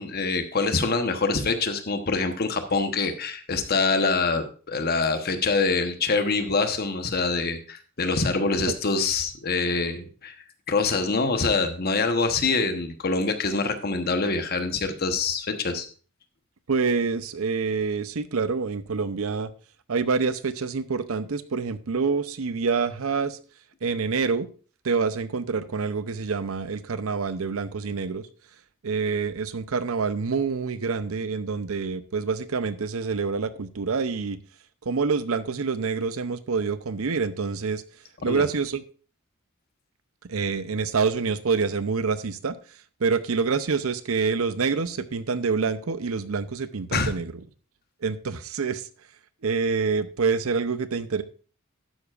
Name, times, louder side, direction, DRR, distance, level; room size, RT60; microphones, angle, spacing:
voice 1, 0.0-10.3 10.7-15.9 38.3-38.4 46.9-47.1, left 4 dB, 45° left, 7 dB, 1.1 m, -25 dB
voice 2, 16.7-19.5 19.9-23.4 23.8-24.5 24.8-28.3 28.8-34.4 34.8-37.8 38.2-38.8 40.2-42.6 43.0-47.3 48.0-48.9 49.4-51.2, right 5 dB, 75° right, 13 dB, 0.7 m, -26 dB
12.0 x 9.5 x 2.5 m, 0.38 s
head